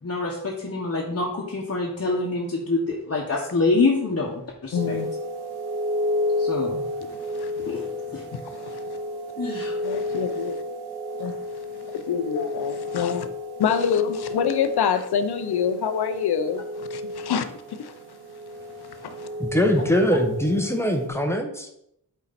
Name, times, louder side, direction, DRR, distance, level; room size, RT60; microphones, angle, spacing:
voice 1, 0.0-5.0 6.4-6.8 7.6-7.8 8.1-8.3 9.4-9.8 12.3-12.5 15.8-15.9, left 3 dB, 40° left, -2 dB, 1.4 m, -26 dB
voice 2, 4.7-5.1 7.3-7.9 8.3-9.0 9.8-10.6 11.2-11.4 11.9-13.3 13.6-17.9 19.0-19.3, left 7 dB, 75° left, 10 dB, 0.8 m, -26 dB
sound 1, 4.7-21.1, left 1 dB, 80° right, 1.8 m, -31 dB
voice 3, 19.4-21.7, equal, 5° left, 4 dB, 1.3 m, -22 dB
8.3 x 4.6 x 4.2 m, 0.78 s
cardioid pair, 70°, 38 cm